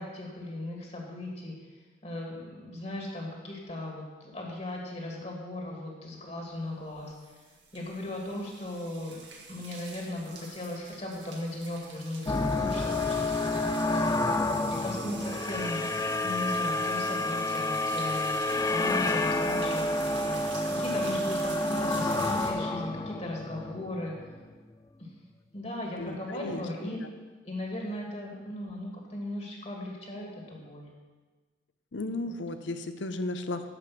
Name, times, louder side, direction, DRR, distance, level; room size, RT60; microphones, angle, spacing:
voice 1, 0.0-1.5 2.0-7.4 7.7-9.2 9.5-13.6 14.4-18.3 18.7-20.2 20.7-24.1 25.0-25.1 25.5-27.0 27.4-30.9, left 1 dB, 35° left, -1 dB, 1.9 m, -37 dB
sound 1, 6.8-22.5, right 4 dB, 75° right, 1.9 m, -45 dB
sound 2, 12.3-24.4, left 2 dB, 15° left, 0.3 m, -29 dB
voice 2, 26.0-27.1 31.9-33.7, left 2 dB, 75° left, 10 dB, 0.7 m, -35 dB
11.0 x 5.1 x 7.1 m, 1.3 s
head